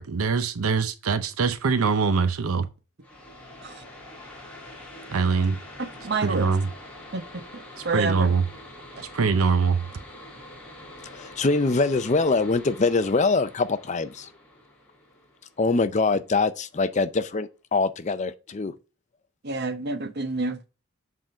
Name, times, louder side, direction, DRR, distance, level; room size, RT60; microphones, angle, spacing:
voice 1, 0.0-2.7 5.1-5.6 6.2-6.7 7.9-8.4 9.1-9.8, right 5 dB, 80° right, 0.7 m, -23 dB
sound 1, 3.0-16.4, left 1 dB, 5° left, 1.8 m, -45 dB
voice 2, 5.8-6.5 7.1-8.4 8.9-9.1 19.4-20.6, right 3 dB, 50° right, 0.8 m, -29 dB
voice 3, 11.0-14.3 15.6-18.7, left 3 dB, 35° left, 0.5 m, -24 dB
7.6 x 3.7 x 4.2 m
head